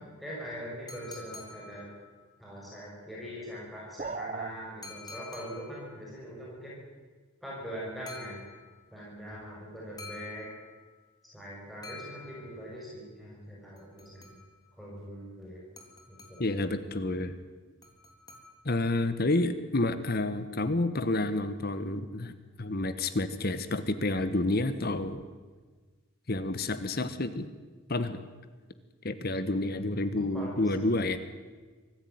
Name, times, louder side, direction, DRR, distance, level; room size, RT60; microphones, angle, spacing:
voice 1, 0.2-1.9 2.4-6.8 7.4-8.4 8.9-10.5 11.3-14.3 14.8-15.6 16.1-16.5 30.2-30.8, equal, ahead, -6 dB, 6.3 m, -42 dB
sound 1, 0.9-2.4 4.8-6.0 8.1-8.9 10.0-11.0 11.8-12.8 13.8-14.7 15.8-16.7 17.8-18.9, left 3 dB, 20° left, 3.2 m, -49 dB
sound 2, 4.0-4.5, right 4 dB, 35° right, 0.8 m, -35 dB
voice 2, 16.4-17.3 18.6-25.2 26.3-27.5 27.9-28.2 29.0-31.2, left 2 dB, 45° left, 12 dB, 1.2 m, -29 dB
24.5 x 15.0 x 9.4 m, 1.4 s
head